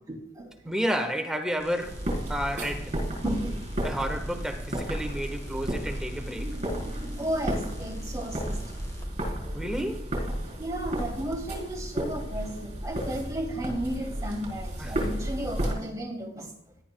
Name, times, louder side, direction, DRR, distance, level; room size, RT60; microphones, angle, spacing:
voice 1, 0.1-0.7 3.2-3.6 7.2-8.6 10.6-16.5, right 1 dB, 20° right, 2.4 m, -33 dB
voice 2, 0.6-2.0 2.3-2.9 3.8-6.5 9.5-10.1 14.8-14.9, equal, 5° right, 1.3 m, -31 dB
sound 1, 1.6-9.1 12.8-12.9, equal, 20° left, 2.7 m, -46 dB
sound 2, 1.8-15.7, right 1 dB, 40° right, 3.8 m, -33 dB
18.0 x 11.0 x 2.2 m
head